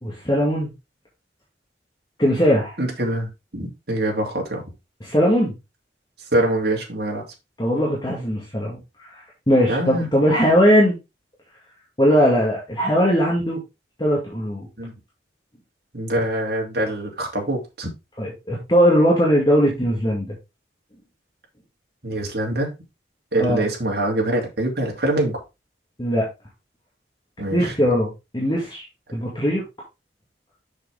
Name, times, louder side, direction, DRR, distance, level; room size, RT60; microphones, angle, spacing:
voice 1, 0.0-0.7 2.2-2.8 5.0-5.5 7.6-11.0 12.0-13.6 14.0-14.7 18.2-20.3 23.4-23.6 26.0-26.3 27.5-28.8 29.1-29.6, equal, 25° left, 2.1 m, -19 dB
voice 2, 2.8-4.6 6.3-7.2 9.7-10.1 14.8-14.9 15.9-17.9 22.0-22.7 23.3-25.4 27.4-27.7, right 1 dB, 60° right, 2.7 m, -24 dB
6.6 x 6.5 x 3.5 m
head